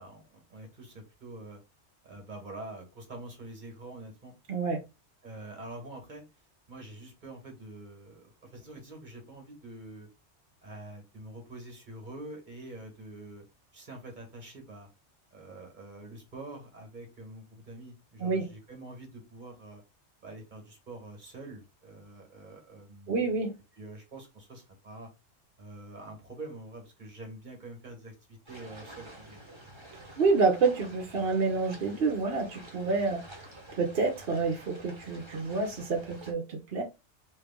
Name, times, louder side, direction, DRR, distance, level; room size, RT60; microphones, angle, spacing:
voice 1, 0.0-1.6 2.0-4.3 5.2-6.2 6.7-10.1 10.6-13.4 13.7-14.9 15.3-19.8 20.2-23.3 23.8-25.1 25.6-29.4, right 2 dB, 45° right, 2 dB, 1.5 m, -46 dB
voice 2, 4.5-4.8 18.2-18.5 23.1-23.5 30.2-33.2 33.7-36.8, right 4 dB, 60° right, 2 dB, 0.9 m, -28 dB
sound 1, 28.5-36.3, right 1 dB, 25° right, 1.3 m, -49 dB
3.3 x 3.0 x 3.5 m, 0.26 s
omnidirectional pair, 1.2 m